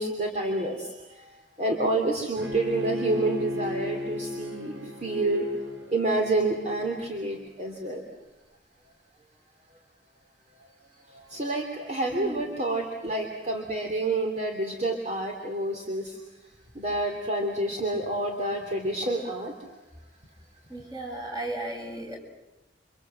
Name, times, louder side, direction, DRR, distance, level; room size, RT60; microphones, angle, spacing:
voice 1, 0.0-5.4 5.9-8.0 11.1-16.2 16.7-19.8, right 2 dB, 35° right, 2 dB, 3.0 m, -29 dB
Bowed string instrument, 2.4-7.4, left 2 dB, 75° right, 4.8 m, -35 dB
voice 2, 20.7-22.2, right 1 dB, 20° right, 1 dB, 6.9 m, -35 dB
30.0 x 25.5 x 7.8 m, 0.99 s
head